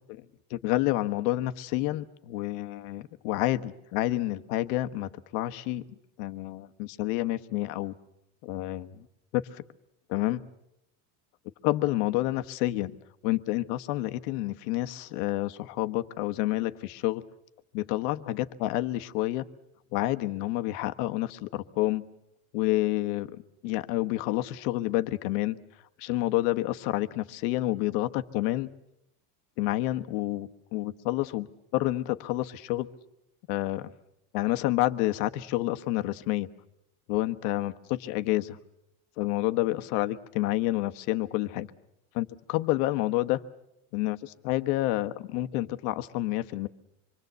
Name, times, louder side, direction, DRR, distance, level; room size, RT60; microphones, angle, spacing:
voice 1, 0.5-5.8 6.2-8.0 8.4-9.1 9.3-9.6 10.1-10.4 11.6-12.9 13.2-17.2 17.7-19.4 19.9-22.0 22.5-23.4 23.6-25.6 26.0-28.7 29.6-32.9 33.5-33.9 34.3-36.5 37.1-38.6 39.2-41.7 42.1-43.4 43.9-46.7, left 16 dB, 70° left, 10 dB, 1.3 m, -29 dB
26.5 x 23.5 x 8.0 m, 0.83 s
cardioid pair, 160°, 47 cm